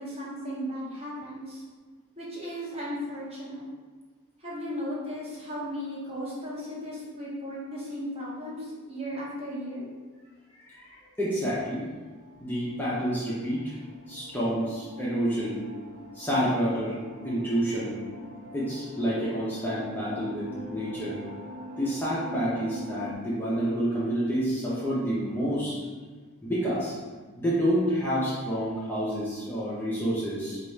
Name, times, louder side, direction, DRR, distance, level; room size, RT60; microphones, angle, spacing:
voice 1, 0.0-1.6 2.2-3.6 4.4-9.8, equal, 30° right, -6 dB, 0.9 m, -36 dB
voice 2, 10.6-11.9 12.4-13.7 14.1-15.6 16.1-17.0 17.2-18.0 18.5-21.2 21.8-25.8 26.4-26.9 27.4-30.6, equal, 10° left, -9 dB, 0.5 m, -28 dB
sound 1, 11.8-23.1, right 1 dB, 60° right, 0.8 m, -44 dB
4.0 x 2.3 x 3.2 m, 1.4 s
head